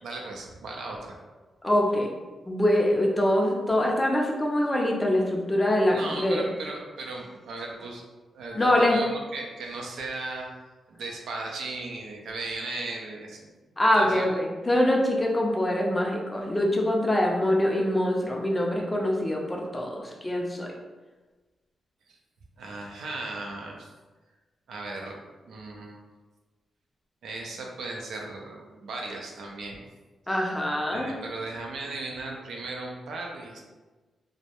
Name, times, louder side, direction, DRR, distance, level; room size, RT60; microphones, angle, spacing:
voice 1, 0.0-1.2 5.9-8.0 8.3-10.5 10.9-13.5 13.9-14.3 22.6-23.9 24.7-25.2 25.4-26.0 27.2-29.8 30.3-30.6 30.9-33.6, right 2 dB, 90° right, 0 dB, 0.4 m, -36 dB
voice 2, 1.6-2.1 2.5-6.4 8.5-9.0 13.8-20.7 30.3-31.1, left 1 dB, 15° left, -1 dB, 0.4 m, -24 dB
2.2 x 2.0 x 2.8 m, 1.3 s
wide cardioid pair, 125°, 0 cm